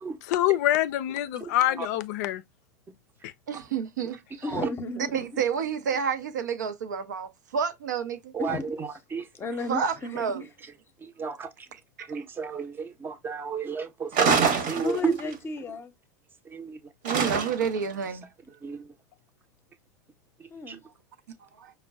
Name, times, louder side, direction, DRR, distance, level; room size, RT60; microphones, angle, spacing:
voice 1, 0.2-2.4 3.2-3.3, left 13 dB, 65° left, 0.4 m, -25 dB
voice 2, 1.4-1.9 4.4-4.7 8.3-9.3 11.0-11.5 12.1-15.2 16.5-16.8 18.6-18.9 20.4-20.8, right 6 dB, 20° right, 0.6 m, -33 dB
voice 3, 3.5-4.2 5.0-8.3 9.7-10.4 12.0-12.2 17.0-18.3 21.6-21.7, right 7 dB, 90° right, 0.6 m, -30 dB
voice 4, 4.4-5.3 8.4-8.6 9.4-10.3 14.8-15.9 20.5-20.8, left 3 dB, 25° left, 0.6 m, -33 dB
sound 1, 14.1-15.3 17.1-17.8, right 5 dB, 60° right, 1.0 m, -24 dB
5.1 x 2.1 x 2.3 m
hypercardioid pair, 100°, 9 cm